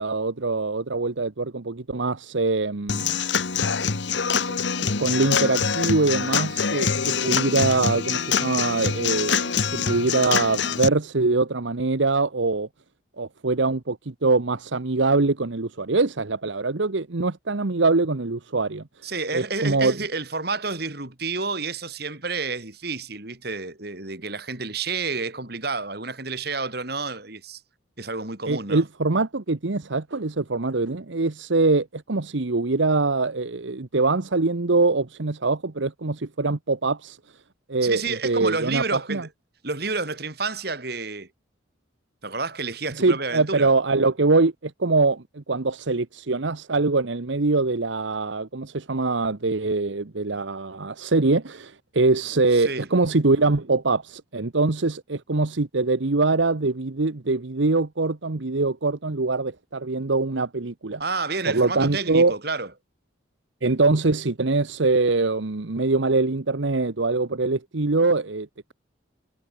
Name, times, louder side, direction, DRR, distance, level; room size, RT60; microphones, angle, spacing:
voice 1, 0.0-3.2 4.5-12.7 13.2-18.8 19.3-19.9 28.5-37.2 37.7-39.2 42.9-61.0 61.5-62.3 63.6-68.7, right 3 dB, 70° right, 1.0 m, -23 dB
Human voice / Acoustic guitar / Drum, 2.9-10.9, left 6 dB, 65° left, 1.2 m, -25 dB
voice 2, 19.0-27.6 28.0-28.9 37.8-39.3 39.6-41.3 42.2-43.7 52.5-52.9 61.0-62.7, right 4 dB, 50° right, 2.9 m, -30 dB
head